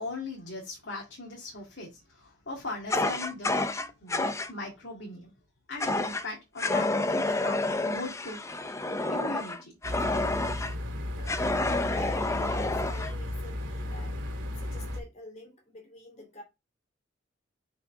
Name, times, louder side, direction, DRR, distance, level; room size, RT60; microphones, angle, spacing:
voice 1, 0.0-3.6 4.0-5.3 5.7-8.4 9.1-9.7, left 3 dB, 70° left, 2.2 m, -39 dB
Fire, 2.9-4.5 5.8-6.2 6.6-10.7 11.3-13.1, left 2 dB, 15° left, 0.5 m, -29 dB
sound 1, 9.8-15.0, left 1 dB, 85° right, 2.5 m, -35 dB
voice 2, 11.2-14.2 14.6-16.4, equal, 40° left, 2.8 m, -48 dB
5.5 x 5.2 x 3.6 m
head